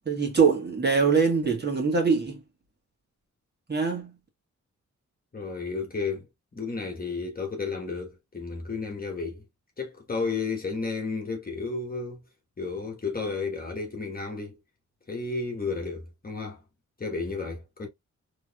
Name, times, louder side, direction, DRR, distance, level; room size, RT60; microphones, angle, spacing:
voice 1, 0.0-2.4 3.7-4.1, right 5 dB, 35° right, 1.7 m, -23 dB
voice 2, 5.3-6.3 6.5-9.4 9.8-12.2 12.6-14.6 15.1-16.6 17.0-17.9, left 4 dB, 30° left, 1.3 m, -32 dB
3.8 x 3.2 x 2.3 m
cardioid pair, 90°, 30 cm